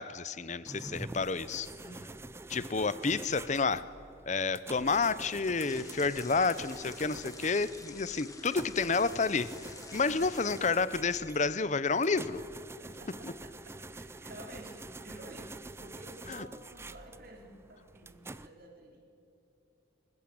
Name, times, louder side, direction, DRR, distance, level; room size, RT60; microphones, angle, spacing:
voice 1, 0.0-1.7 2.5-3.9 4.3-9.5 9.9-12.4 13.2-13.3 16.3-16.5, left 4 dB, 35° left, 16 dB, 0.6 m, -30 dB
sound 1, 0.7-18.5, right 2 dB, 15° right, 0.5 m, -47 dB
voice 2, 1.7-2.1 10.1-10.3 11.9-12.3 12.8-19.0, right 1 dB, 50° right, 1 dB, 4.0 m, -51 dB
sound 2, 5.6-10.6, left 4 dB, 15° left, 1.4 m, -50 dB
26.0 x 15.0 x 8.8 m, 2.8 s
head